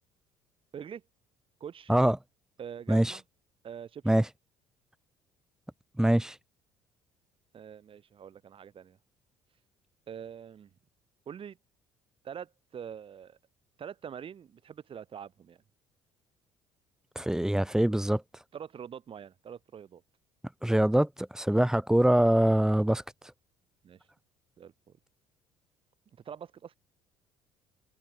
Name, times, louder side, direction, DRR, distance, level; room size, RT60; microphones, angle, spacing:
voice 1, 1.6-1.9 2.6-3.2 3.6-4.0 7.5-9.0 10.1-10.7 11.3-11.6 12.2-13.4 13.8-15.6 18.5-20.0 21.5-21.7 23.8-24.1 24.6-25.0 26.2-26.8, right 8 dB, 45° right, 8.0 m, -44 dB
voice 2, 6.0-6.3 17.2-18.2 20.6-23.0, right 1 dB, 5° right, 1.0 m, -24 dB
hypercardioid pair, 55°, 12 cm